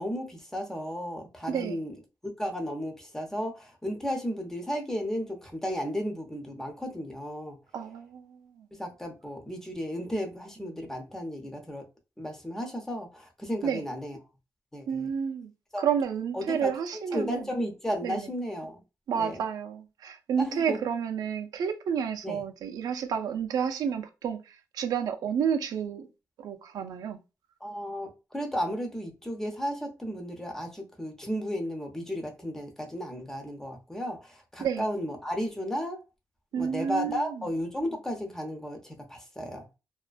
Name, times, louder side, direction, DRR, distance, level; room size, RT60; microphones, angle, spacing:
voice 1, 0.0-1.9 2.4-7.6 8.7-11.8 12.2-14.2 14.7-15.1 15.7-15.9 16.3-18.8 19.1-19.4 20.4-20.8 22.2-22.4 27.6-36.0 36.6-39.7, equal, 5° left, 0.7 m, -34 dB
voice 2, 1.5-1.8 7.7-8.6 13.6-13.8 14.9-15.5 15.8-17.4 18.0-18.3 19.1-24.4 24.7-26.1 26.4-27.2 34.6-34.8 36.5-37.4, right 7 dB, 85° right, 0.4 m, -30 dB
2.4 x 2.1 x 2.4 m
wide cardioid pair, 130°, 6 cm